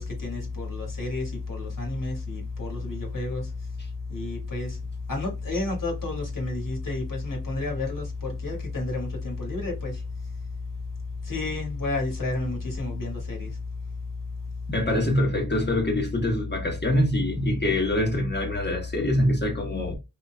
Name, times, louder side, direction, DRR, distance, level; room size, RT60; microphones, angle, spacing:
voice 1, 0.0-3.5 4.1-4.8 5.1-10.0 11.2-13.5, left 2 dB, 55° left, 1.9 m, -30 dB
voice 2, 14.7-19.9, left 1 dB, 25° left, 1.2 m, -24 dB
4.0 x 2.7 x 2.2 m
wide cardioid pair, 75°, 39 cm